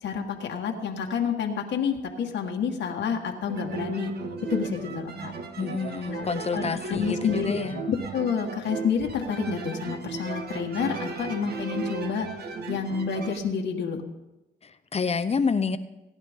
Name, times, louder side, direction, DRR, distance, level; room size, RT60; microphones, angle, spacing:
voice 1, 0.0-4.1 4.5-5.3 6.1-7.6 7.9-12.3 12.7-14.0, left 6 dB, 65° left, 2 dB, 1.5 m, -29 dB
sound 1, 3.5-13.4, right 4 dB, 55° right, 1.4 m, -35 dB
voice 2, 5.6-7.8 14.6-15.8, left 5 dB, 30° left, 12 dB, 0.7 m, -28 dB
19.5 x 10.5 x 3.6 m, 0.99 s
cardioid pair, 90°, 20 cm